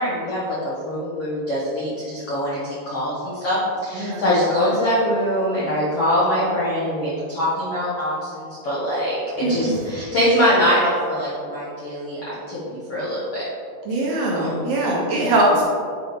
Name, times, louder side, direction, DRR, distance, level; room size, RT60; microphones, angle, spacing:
voice 1, 0.0-13.5 14.4-14.6 15.1-15.2, equal, 65° left, -9 dB, 1.4 m, -23 dB
voice 2, 3.9-4.3 9.4-9.9 13.9-15.6, right 1 dB, 70° right, -4 dB, 2.3 m, -21 dB
9.7 x 5.0 x 3.6 m, 2.3 s
omnidirectional pair, 4.8 m